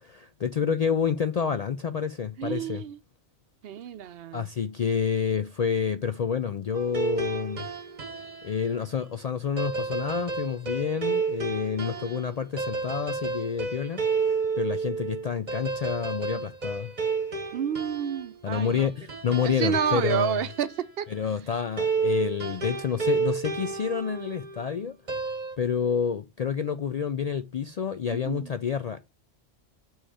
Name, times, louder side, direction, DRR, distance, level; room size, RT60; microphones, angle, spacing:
voice 1, 0.0-2.8 4.3-7.7 8.4-16.9 18.4-20.4 21.1-25.0 25.6-29.0, left 7 dB, 70° left, 0.3 m, -29 dB
voice 2, 2.4-3.0 3.6-4.5 11.8-12.4 17.5-18.9 19.3-21.1 28.1-28.5, right 9 dB, 65° right, 0.8 m, -30 dB
sound 1, 6.7-8.6 9.6-20.7 21.8-24.7 25.1-25.6, right 4 dB, 40° right, 1.0 m, -31 dB
6.3 x 3.1 x 4.7 m
omnidirectional pair, 1.2 m